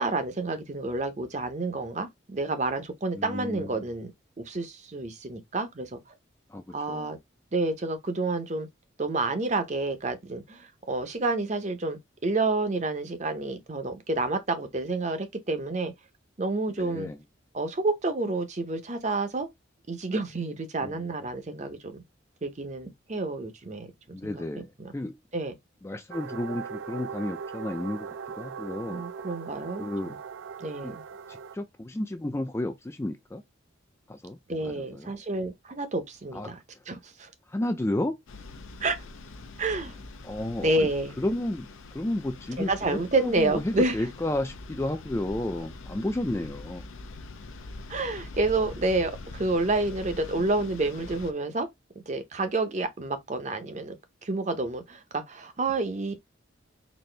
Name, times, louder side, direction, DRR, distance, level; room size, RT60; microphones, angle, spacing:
voice 1, 0.0-4.1 4.4-6.0 6.7-7.2 7.5-8.7 9.0-15.9 16.4-17.1 17.5-19.5 19.9-22.0 22.4-23.9 24.2-24.9 25.3-25.5 28.9-30.2 30.6-31.0 34.5-36.6 36.9-37.3 38.8-39.0 39.6-39.9 40.6-41.2 42.6-44.0 47.9-51.7 52.1-54.0 54.2-56.2, right 2 dB, 35° right, 0.7 m, -29 dB
voice 2, 3.1-3.7 6.5-7.1 16.8-17.2 20.8-21.1 24.1-25.2 25.8-29.0 29.8-30.1 30.8-31.0 31.3-33.4 34.1-34.4 34.6-35.1 36.3-36.5 37.5-38.2 40.2-40.9 41.2-46.8, left 1 dB, 15° left, 0.3 m, -32 dB
sound 1, 26.1-31.6, right 6 dB, 75° right, 0.4 m, -39 dB
Room Tone of a Beach, 38.3-51.3, left 3 dB, 90° left, 0.6 m, -43 dB
4.1 x 2.7 x 3.2 m
head